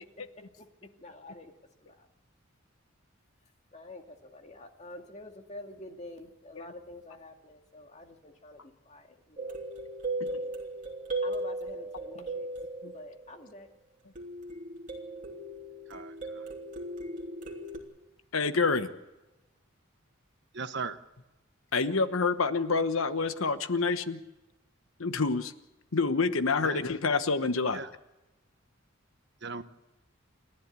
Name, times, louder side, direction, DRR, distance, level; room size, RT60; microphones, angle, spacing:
voice 1, 1.0-1.5 1.8-2.1 3.7-9.6 11.2-12.5 12.9-13.7, left 2 dB, 35° left, 4 dB, 2.0 m, -47 dB
sound 1, 9.4-13.6 14.2-17.8, right 2 dB, 40° right, 3.1 m, -37 dB
voice 2, 15.9-16.4 20.5-21.0 26.6-26.8 27.7-27.9 29.4-29.6, right 4 dB, 55° right, 11 dB, 1.0 m, -38 dB
voice 3, 18.3-18.9 21.7-24.2 25.0-25.5 25.9-27.8, left 4 dB, 80° left, 11 dB, 1.1 m, -27 dB
29.0 x 11.5 x 8.3 m, 1.0 s
head